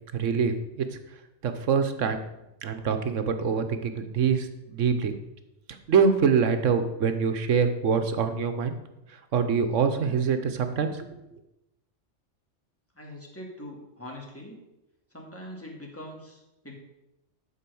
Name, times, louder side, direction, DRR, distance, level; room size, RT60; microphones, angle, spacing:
voice 1, 0.1-0.9 1.4-2.2 2.6-5.1 5.9-8.7 9.3-11.1, right 6 dB, 85° right, 8 dB, 1.3 m, -25 dB
voice 2, 13.0-14.6 15.1-16.8, left 1 dB, 10° left, -1 dB, 2.4 m, -42 dB
12.0 x 4.8 x 7.0 m, 0.92 s
omnidirectional pair, 1.2 m